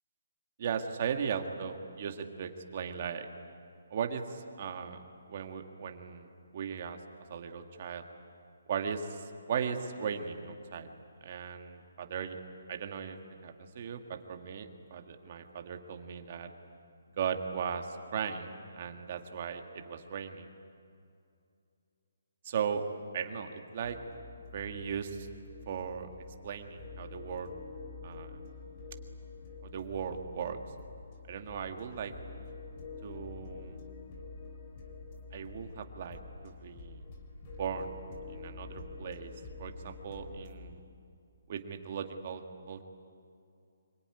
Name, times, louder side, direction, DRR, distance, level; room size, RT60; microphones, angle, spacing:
voice 1, 0.6-3.3 3.9-5.0 5.3-7.0 7.3-8.0 8.7-10.9 11.2-12.4 12.7-16.5 17.2-20.5 22.4-22.8 23.1-24.0 24.5-25.3 25.7-26.1 26.4-27.5 28.0-28.4 29.6-30.6 31.3-32.1 33.0-33.8 35.3-37.0 37.6-37.9 38.3-39.3 39.6-40.8 41.5-42.8, right 7 dB, 30° right, 5 dB, 1.7 m, -37 dB
sound 1, 23.8-40.7, left 4 dB, 20° left, 2.5 m, -47 dB
25.5 x 23.5 x 9.8 m, 2.5 s
hypercardioid pair, 175°, 0 cm